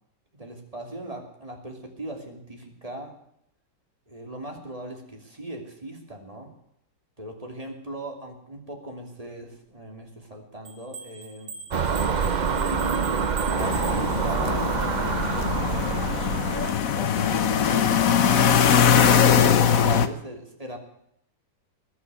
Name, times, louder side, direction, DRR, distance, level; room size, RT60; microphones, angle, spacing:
voice 1, 0.3-3.1 4.1-6.5 7.2-11.5 12.2-16.1 16.7-20.8, right 1 dB, 20° right, 2 dB, 2.9 m, -39 dB
sound 1, 10.6-14.6, right 6 dB, 65° right, 3.2 m, -41 dB
Car passing by / Engine, 11.7-16.7, right 5 dB, 90° right, 0.4 m, -26 dB
sound 2, 13.6-20.1, left 7 dB, 55° left, 1.2 m, -21 dB
20.0 x 6.6 x 9.3 m, 0.74 s
omnidirectional pair, 2.0 m